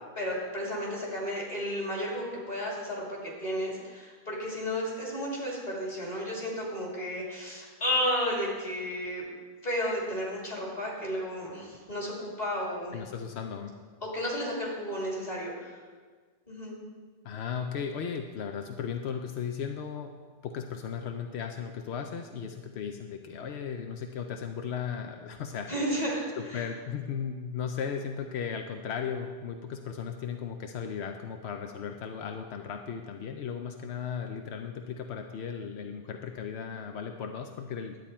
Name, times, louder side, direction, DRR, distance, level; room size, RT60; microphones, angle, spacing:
voice 1, 0.2-9.2 9.6-13.0 14.0-15.8 16.5-16.8 25.7-26.6, equal, 40° left, -4 dB, 2.7 m, -33 dB
voice 2, 12.9-13.7 17.2-20.1 20.4-25.7 26.4-38.0, left 7 dB, 90° left, 4 dB, 0.9 m, -36 dB
11.0 x 8.6 x 4.3 m, 1.5 s
omnidirectional pair, 1.1 m